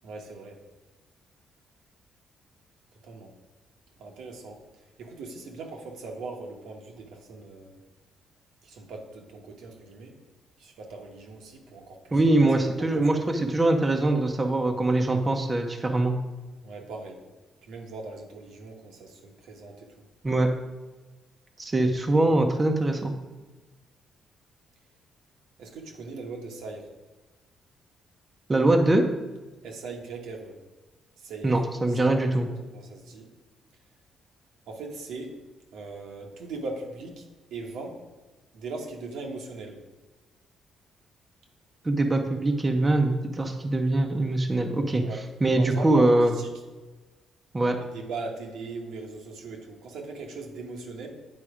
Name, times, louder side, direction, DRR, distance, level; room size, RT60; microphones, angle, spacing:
voice 1, 0.0-0.6 3.0-3.4 4.0-4.6 5.0-7.8 8.6-10.1 10.6-12.3 12.9-13.2 16.6-17.2 17.6-19.9 25.6-26.9 29.6-30.6 31.2-31.6 31.9-32.2 32.7-33.3 34.7-35.4 35.7-38.0 38.5-39.8 45.0-45.2 45.5-46.1 46.3-46.5 47.9-51.1, right 3 dB, 80° right, 1 dB, 1.2 m, -39 dB
voice 2, 12.1-13.2 13.5-16.1 20.2-20.5 21.6-23.1 28.5-29.0 31.4-32.5 41.8-45.0 45.4-46.3 47.5-47.8, right 2 dB, 20° right, 3 dB, 0.8 m, -23 dB
8.7 x 4.1 x 4.9 m, 1.2 s
cardioid pair, 90°, 0 cm